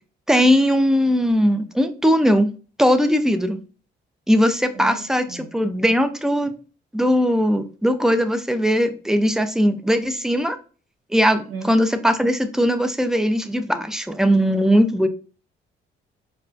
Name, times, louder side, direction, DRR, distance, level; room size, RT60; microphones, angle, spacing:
voice 1, 0.3-2.5 2.8-3.6 4.3-6.5 6.9-10.6 11.1-15.1, equal, 5° right, 9 dB, 0.4 m, -19 dB
voice 2, 4.7-5.5 11.5-11.7, right 5 dB, 75° right, 0 dB, 1.0 m, -35 dB
4.5 x 2.2 x 2.5 m, 0.37 s
cardioid pair, 90°, 20 cm